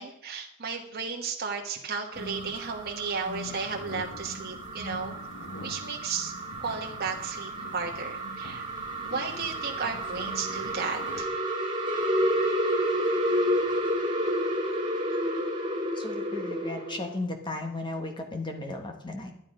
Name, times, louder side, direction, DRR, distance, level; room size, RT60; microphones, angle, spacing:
voice 1, 0.0-5.2 5.6-6.3 6.6-8.7 9.1-11.3, right 5 dB, 45° right, 0 dB, 1.3 m, -34 dB
sound 1, 2.0-17.1, equal, 20° right, 2.6 m, -31 dB
sound 2, 2.1-11.2, left 1 dB, 60° left, 1.1 m, -44 dB
voice 2, 15.9-19.3, left 2 dB, 20° left, 3 dB, 1.5 m, -35 dB
11.5 x 9.9 x 5.1 m, 0.76 s
head